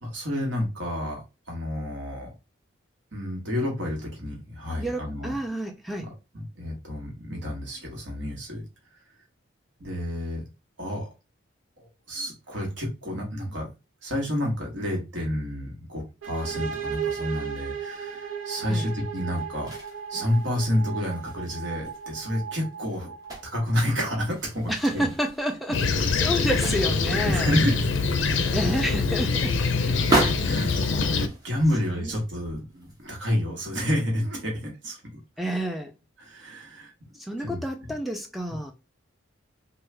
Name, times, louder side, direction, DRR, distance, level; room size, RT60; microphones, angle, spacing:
voice 1, 0.0-1.2 1.5-2.3 3.1-5.3 6.0-8.6 9.8-10.4 10.8-11.1 11.8-13.7 14.0-19.7 20.1-23.1 23.4-25.1 27.1-27.9 28.2-28.4 29.9-30.0 30.4-30.7 31.1-35.0 36.2-36.9 37.4-37.6, left 1 dB, 65° right, 1.3 m, -29 dB
voice 2, 4.8-6.1 18.7-18.9 24.7-27.5 28.3-30.3 32.0-32.2 35.4-35.9 37.2-38.7, equal, ahead, 0.3 m, -30 dB
sound 1, 16.2-23.9, right 7 dB, 85° right, 0.8 m, -35 dB
sound 2, 19.3-20.7 21.1-23.7 24.0-27.1 27.5-33.1 33.6-33.7, right 2 dB, 20° right, 1.0 m, -34 dB
Fixed-wing aircraft airplane, 25.7-31.3, left 4 dB, 65° left, 0.4 m, -24 dB
3.0 x 2.3 x 3.3 m
head